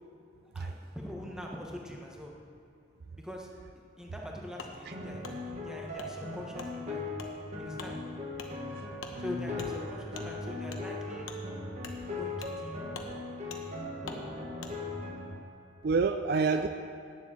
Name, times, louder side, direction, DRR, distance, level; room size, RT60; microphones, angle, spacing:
voice 1, 0.5-2.3 3.2-7.1 7.6-8.0 9.2-11.3 12.2-12.8, left 1 dB, 5° right, -1 dB, 1.1 m, -43 dB
Wood, 4.6-4.7 5.2-5.4 6.0-6.1 6.6-6.7 7.2-7.3 7.7-7.9 8.3-8.5 9.0-9.2 9.6-9.7 10.1-10.3 10.7-10.8 11.2-11.4 11.8-12.0 12.4-12.6 12.9-13.1 13.5-13.6 14.0-14.2 14.6-14.7, left 5 dB, 90° left, 1.0 m, -44 dB
sound 1, 4.9-15.3, left 2 dB, 35° right, 1.5 m, -38 dB
voice 2, 8.7-9.0 11.8-12.2 15.8-16.7, right 4 dB, 50° right, 7 dB, 0.4 m, -29 dB
9.7 x 7.4 x 7.3 m, 2.4 s
head